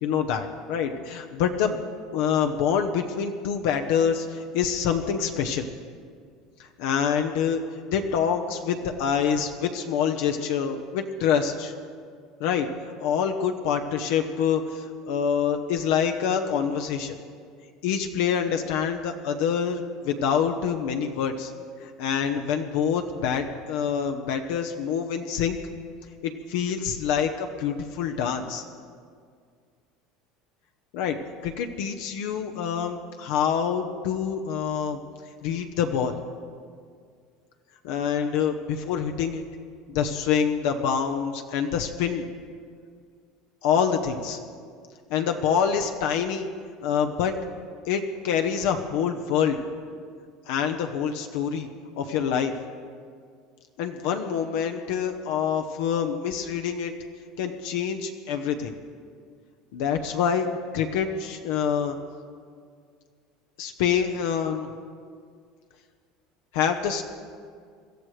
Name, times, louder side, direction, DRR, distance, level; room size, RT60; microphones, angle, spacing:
voice 1, 0.0-1.8 2.1-5.7 6.8-7.6 7.9-11.7 12.4-17.1 17.8-21.5 21.8-25.6 26.2-28.6 30.9-31.2 31.4-35.0 35.4-36.2 37.8-39.4 39.9-42.3 43.6-44.4 45.1-46.5 46.8-47.3 47.9-49.6 50.5-51.7 52.0-52.5 53.8-56.9 57.4-58.8 59.7-60.5 60.7-62.0 63.6-64.7 66.5-67.0, left 7 dB, 70° left, 5 dB, 0.9 m, -26 dB
25.5 x 13.5 x 3.3 m, 2.1 s
cardioid pair, 165°, 0 cm